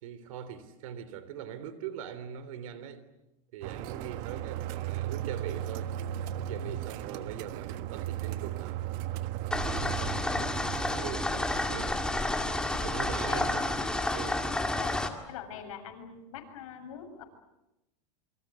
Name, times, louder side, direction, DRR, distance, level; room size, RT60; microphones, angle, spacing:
voice 1, 0.0-3.0 3.5-6.0 6.4-8.8 9.6-11.3 11.7-12.0 12.7-13.7 14.1-14.4, right 9 dB, 75° right, 14 dB, 3.4 m, -42 dB
sound 1, 3.6-13.4, right 12 dB, 50° right, 1.5 m, -37 dB
sound 2, 9.5-15.1, left 2 dB, 5° left, 2.2 m, -30 dB
voice 2, 15.3-17.2, left 8 dB, 70° left, 4 dB, 7.0 m, -43 dB
27.5 x 24.5 x 8.2 m, 0.92 s
supercardioid pair, 145°, 18 cm